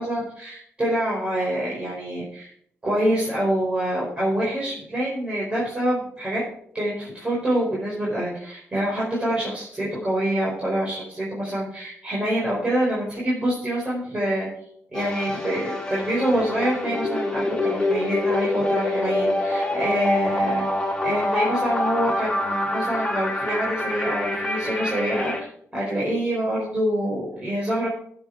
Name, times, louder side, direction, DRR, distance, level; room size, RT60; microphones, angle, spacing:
voice 1, 0.0-2.5 2.8-6.4 6.7-14.5 14.9-20.7 21.0-25.5 25.7-27.9, right 1 dB, 25° right, -6 dB, 4.6 m, -26 dB
sound 1, 14.9-25.4, left 2 dB, 15° left, 3.3 m, -26 dB
14.5 x 7.3 x 4.6 m, 0.65 s
wide cardioid pair, 125°, 5 cm